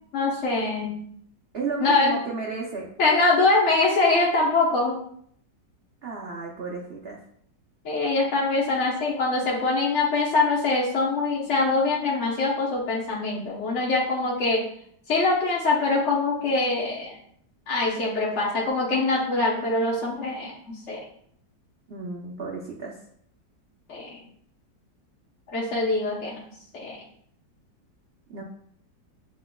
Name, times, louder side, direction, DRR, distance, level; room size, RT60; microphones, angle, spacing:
voice 1, 0.1-1.0 1.8-2.2 3.0-5.0 7.8-14.6 15.1-17.2 17.7-21.0 23.9-24.2 25.5-26.4 26.7-27.0, left 3 dB, 50° left, -4 dB, 1.0 m, -23 dB
voice 2, 1.5-2.9 6.0-7.2 21.9-23.0 28.3-28.4, right 4 dB, 75° right, -2 dB, 0.5 m, -33 dB
7.7 x 3.0 x 2.2 m, 0.65 s
omnidirectional pair, 1.9 m